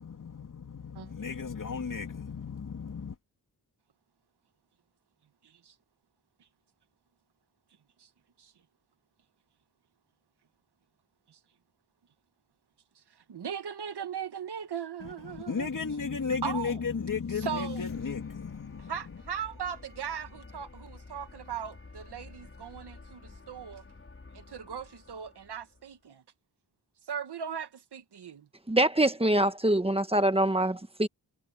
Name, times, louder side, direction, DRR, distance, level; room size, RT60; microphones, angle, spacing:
voice 1, 0.0-3.2 15.0-18.9, left 5 dB, 50° left, 3.1 m, -34 dB
voice 2, 5.4-5.7 8.0-8.1 8.4-8.5 11.3-11.4 13.3-15.7 16.4-16.8 17.4-17.8 18.9-23.8 24.3-26.2 27.1-28.5, right 8 dB, 80° right, 1.6 m, -38 dB
sound 1, 16.9-26.0, left 3 dB, 35° left, 4.6 m, -51 dB
voice 3, 28.7-31.1, right 1 dB, 15° right, 1.5 m, -24 dB
wide cardioid pair, 125°, 39 cm